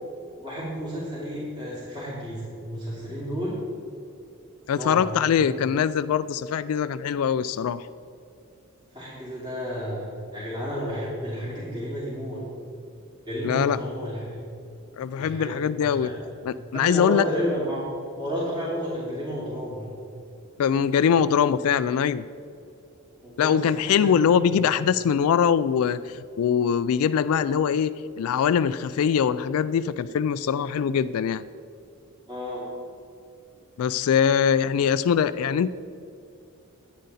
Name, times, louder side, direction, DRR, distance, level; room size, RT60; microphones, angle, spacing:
voice 1, 0.4-3.6 4.7-5.1 8.9-12.4 13.2-14.4 15.2-16.3 16.7-17.8 18.1-19.9 21.2-21.3 23.2-24.1 24.5-24.6 32.3-32.7, equal, 20° right, -10 dB, 2.7 m, -32 dB
voice 2, 4.7-7.8 13.4-13.8 15.0-16.1 16.4-17.2 20.6-22.2 23.4-27.9 28.2-31.4 33.8-35.7, left 7 dB, 75° left, 15 dB, 0.3 m, -22 dB
10.5 x 9.3 x 4.1 m, 2.6 s
head